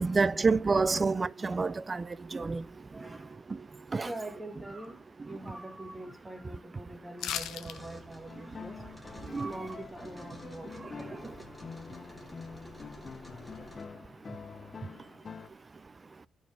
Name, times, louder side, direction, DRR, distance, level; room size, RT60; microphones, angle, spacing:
voice 1, 0.0-2.1 2.3-2.6 3.9-4.1 9.3-9.5, right 4 dB, 30° right, 0.3 m, -27 dB
voice 2, 2.9-3.4 4.0-8.8 9.4-11.0, right 1 dB, 10° right, 1.7 m, -43 dB
sound 1, 7.2-7.8 8.1-8.2, left 10 dB, 80° left, 0.7 m, -35 dB
sound 2, 7.4-13.8, left 1 dB, 5° left, 1.6 m, -52 dB
sound 3, 8.3-15.5, left 5 dB, 40° left, 0.5 m, -46 dB
11.5 x 4.7 x 5.0 m
cardioid pair, 90°, 0 cm